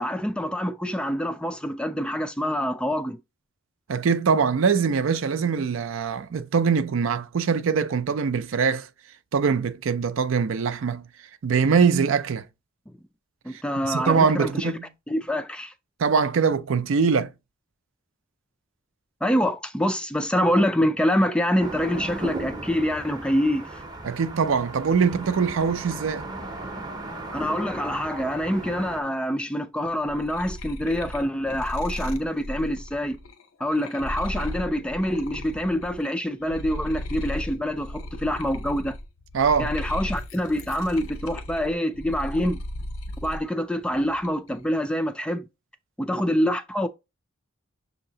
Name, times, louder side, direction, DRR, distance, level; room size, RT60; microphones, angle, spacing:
voice 1, 0.0-3.2 13.4-14.7 15.1-15.7 19.2-23.8 27.3-33.2 33.6-39.0 39.6-42.6 43.2-45.5 46.0-46.9, equal, 5° left, 0.3 m, -26 dB
voice 2, 3.9-8.9 9.3-11.0 11.4-12.4 13.5-14.8 16.0-17.3 24.0-26.3 39.3-39.7, right 6 dB, 70° right, 0.4 m, -23 dB
sound 1, 21.6-29.0, right 2 dB, 20° right, 0.7 m, -36 dB
sound 2, 29.9-36.1 36.4-43.4 43.8-44.5, left 1 dB, 80° left, 0.6 m, -36 dB
6.3 x 2.8 x 2.7 m
head